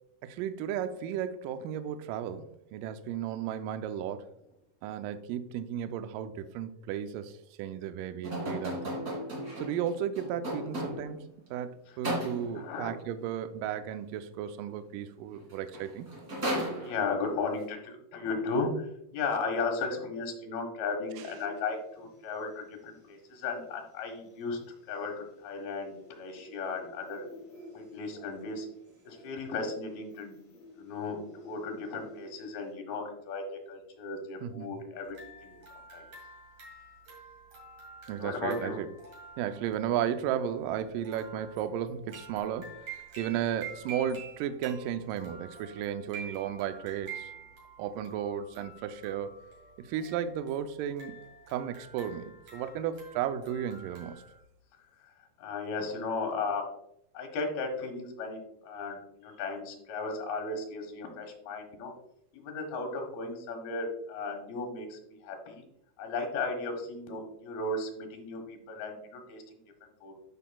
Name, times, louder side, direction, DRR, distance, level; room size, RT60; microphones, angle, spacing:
voice 1, 0.2-2.5 2.7-4.3 4.8-9.0 9.6-11.2 11.5-16.1 34.4-34.7 38.1-38.9 39.4-42.8 43.2-47.3 47.8-49.3 49.9-51.2 51.5-54.2, right 9 dB, 80° right, 9 dB, 1.9 m, -34 dB
sound 1, 8.2-11.2 12.0-12.7 15.3-15.4 15.7-17.3, equal, 30° right, 2.1 m, -35 dB
voice 2, 12.5-12.9 16.8-18.9 19.1-24.6 24.9-27.3 27.7-28.7 29.1-30.4 30.8-35.2 35.4-35.6 35.9-36.0 38.2-38.8 55.4-56.7 57.1-61.9 62.3-65.6 66.0-70.1, left 3 dB, 80° left, 2 dB, 3.2 m, -35 dB
sound 2, 21.1-32.7, left 1 dB, 65° left, 4.7 m, -53 dB
musical box, 35.0-54.4, right 4 dB, 45° right, 3.1 m, -48 dB
12.0 x 5.5 x 2.3 m, 0.76 s
omnidirectional pair, 4.3 m